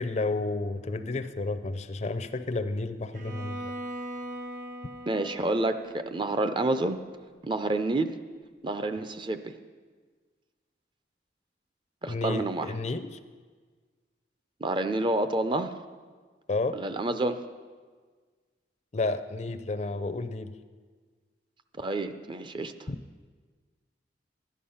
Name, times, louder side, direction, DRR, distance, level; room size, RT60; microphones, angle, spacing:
voice 1, 0.0-3.7 12.1-13.2 16.5-16.8 18.9-20.5 22.9-23.0, left 3 dB, 40° left, 12 dB, 0.5 m, -31 dB
Bowed string instrument, 3.1-7.1, right 1 dB, 45° right, 1.1 m, -41 dB
voice 2, 5.1-7.0 7.4-8.1 8.6-9.5 12.0-12.7 14.6-15.7 16.7-17.4 21.8-22.7, right 2 dB, 25° right, 9 dB, 0.5 m, -28 dB
12.0 x 10.5 x 5.5 m, 1.5 s
head